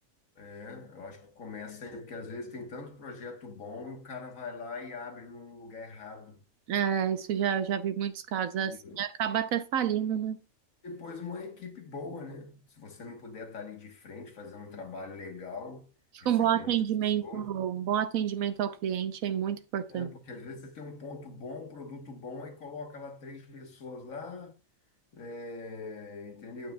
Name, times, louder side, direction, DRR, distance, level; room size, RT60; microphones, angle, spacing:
voice 1, 0.4-6.4 8.6-9.0 10.8-15.9 16.2-16.7 17.0-17.5 19.9-24.5 25.1-26.7, left 4 dB, 75° left, 1.7 m, -42 dB
voice 2, 6.7-10.4 16.2-20.1, right 9 dB, 80° right, 1.2 m, -29 dB
10.0 x 9.0 x 2.3 m
omnidirectional pair, 1.4 m